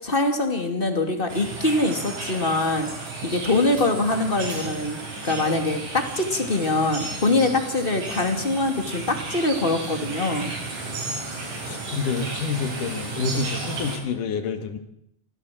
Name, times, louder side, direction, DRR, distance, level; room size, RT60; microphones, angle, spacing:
voice 1, 0.0-2.9 3.2-5.0 5.2-10.5, left 2 dB, 15° left, 5 dB, 2.4 m, -23 dB
sound 1, 1.3-14.0, right 3 dB, 60° right, 6.8 m, -33 dB
voice 2, 10.8-11.2 11.6-14.8, left 5 dB, 65° left, 8 dB, 3.4 m, -28 dB
25.0 x 16.5 x 7.8 m, 0.73 s
omnidirectional pair, 4.1 m